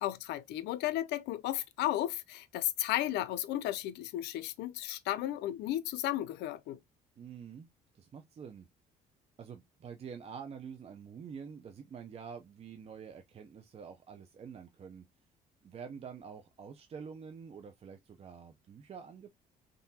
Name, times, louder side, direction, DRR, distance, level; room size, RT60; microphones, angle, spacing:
voice 1, 0.0-6.8, left 13 dB, 85° left, 0.6 m, -34 dB
voice 2, 7.2-7.7 7.9-8.7 9.4-15.1 15.6-19.3, right 6 dB, 35° right, 0.6 m, -47 dB
3.8 x 3.4 x 2.8 m
cardioid pair, 110°, 17 cm